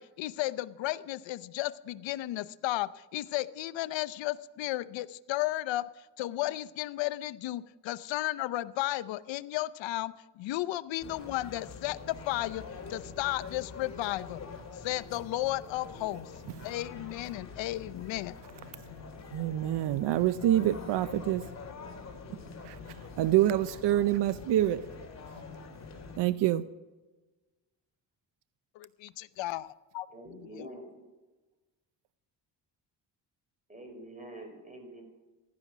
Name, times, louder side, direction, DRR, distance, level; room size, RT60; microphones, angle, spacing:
voice 1, 0.0-5.9 6.2-12.6 12.9-14.4 14.7-16.3 16.6-18.3 28.7-30.1 30.3-30.7, left 16 dB, 90° left, 16 dB, 0.7 m, -34 dB
sound 1, 11.0-26.2, left 4 dB, 35° left, 2.7 m, -45 dB
voice 2, 16.4-16.7 18.7-18.9 19.3-21.5 22.3-24.9 26.2-26.7, right 13 dB, 70° right, 15 dB, 0.7 m, -27 dB
voice 3, 30.1-30.9 33.7-35.0, right 1 dB, 20° right, 4 dB, 4.6 m, -46 dB
15.5 x 12.0 x 6.1 m, 1.2 s
cardioid pair, 105°, 43 cm